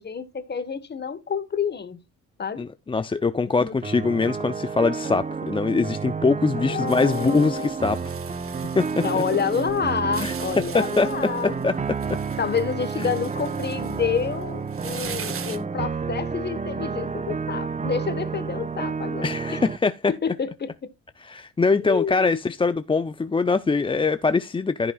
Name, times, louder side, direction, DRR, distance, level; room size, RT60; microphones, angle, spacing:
voice 1, 0.0-2.0 2.4-2.7 3.6-3.7 6.6-7.7 9.0-11.6 12.4-19.6 20.1-20.9 21.8-22.4, left 6 dB, 35° left, 1.3 m, -28 dB
voice 2, 2.6-8.0 8.8-9.2 10.2-10.3 10.7-11.8 13.0-13.1 19.2-20.1 21.2-24.9, left 4 dB, 15° left, 0.5 m, -23 dB
sound 1, 3.8-19.8, right 5 dB, 25° right, 0.8 m, -30 dB
sound 2, 6.9-15.6, right 6 dB, 45° right, 1.7 m, -41 dB
14.5 x 5.8 x 2.3 m
cardioid pair, 90°, 30 cm